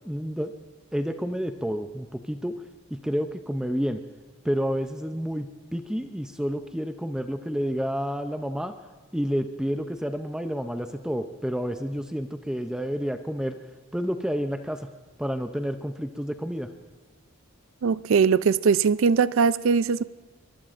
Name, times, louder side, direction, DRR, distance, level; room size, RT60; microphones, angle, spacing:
voice 1, 0.0-0.5 0.9-2.6 2.9-4.0 4.4-8.7 9.1-13.6 13.9-14.9 15.2-16.7, equal, 5° right, 0.4 m, -29 dB
voice 2, 17.8-20.0, right 6 dB, 65° right, 0.4 m, -21 dB
23.0 x 22.0 x 2.5 m
head